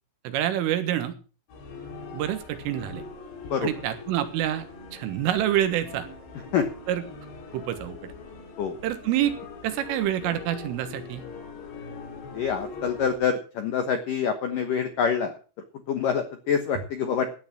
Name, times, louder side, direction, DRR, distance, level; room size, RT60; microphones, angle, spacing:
voice 1, 0.3-1.2 2.1-3.0 3.6-4.7 4.9-6.1 6.9-7.0 7.5-8.1 8.8-9.3 9.6-11.2, right 12 dB, 80° right, 10 dB, 4.0 m, -27 dB
sound 1, 1.5-13.2, left 4 dB, 60° left, 5.8 m, -42 dB
voice 2, 12.3-15.3 15.9-17.3, left 7 dB, 75° left, 7 dB, 2.0 m, -26 dB
14.0 x 9.5 x 6.0 m, 0.37 s
omnidirectional pair, 5.8 m